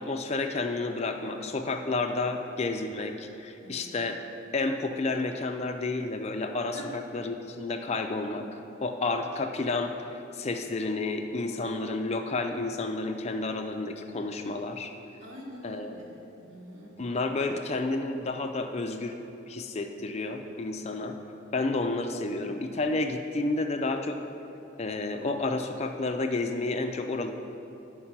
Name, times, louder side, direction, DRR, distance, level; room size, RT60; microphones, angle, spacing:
voice 1, 0.0-4.2 4.5-9.9 10.3-14.9 15.6-16.0 17.0-19.2 19.5-21.2 21.5-24.2 24.8-27.3, left 3 dB, 30° left, 5 dB, 0.4 m, -30 dB
voice 2, 3.6-3.9 6.7-6.9 15.2-17.1, right 1 dB, 75° right, -3 dB, 1.7 m, -45 dB
10.0 x 4.7 x 5.8 m, 2.8 s
head